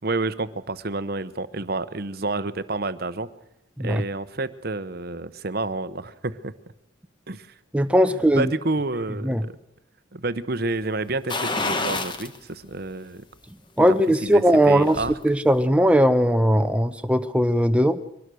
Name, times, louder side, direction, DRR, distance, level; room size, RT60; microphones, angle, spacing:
voice 1, 0.0-3.3 3.8-6.5 7.3-7.5 8.1-9.6 10.1-13.2 14.2-15.1, right 2 dB, 50° right, 14 dB, 0.9 m, -29 dB
voice 2, 7.7-8.5 9.2-9.4 13.8-15.0 15.2-18.0, equal, 5° right, 10 dB, 0.8 m, -19 dB
sound 1, 11.3-12.4 12.8-12.9 14.4-15.2 15.5-15.6, left 3 dB, 25° left, 1.2 m, -28 dB
23.5 x 19.5 x 6.3 m, 0.80 s
head